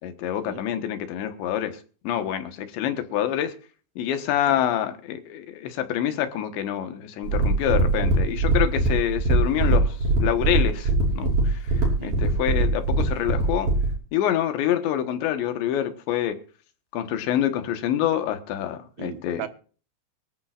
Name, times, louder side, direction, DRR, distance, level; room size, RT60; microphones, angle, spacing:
voice 1, 0.0-1.8 2.1-3.5 4.0-9.9 10.2-13.7 14.1-16.4 16.9-19.4, left 11 dB, 75° left, 8 dB, 3.6 m, -26 dB
sound 1, 7.2-13.9, right 2 dB, 50° right, 7.0 m, -22 dB
voice 2, 19.0-19.5, right 11 dB, 85° right, 9 dB, 3.7 m, -36 dB
24.0 x 13.5 x 2.5 m, 0.39 s
omnidirectional pair, 5.3 m